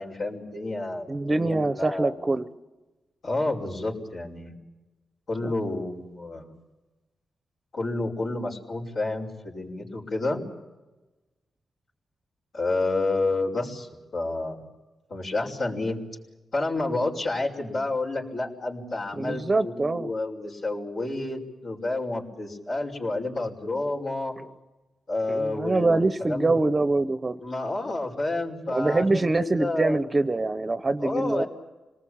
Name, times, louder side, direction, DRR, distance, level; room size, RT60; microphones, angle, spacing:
voice 1, 0.0-2.3 3.2-4.5 5.3-6.5 7.7-10.4 12.5-14.7 15.1-16.0 16.5-24.3 25.1-26.6 27.4-30.1 31.0-31.5, left 2 dB, 65° left, -6 dB, 5.4 m, -30 dB
voice 2, 1.1-2.5 5.4-5.5 19.1-20.1 24.4-24.5 25.3-27.4 28.7-31.4, right 2 dB, 25° right, 11 dB, 0.8 m, -24 dB
27.0 x 19.5 x 8.8 m, 1.1 s
cardioid pair, 95°, 0 cm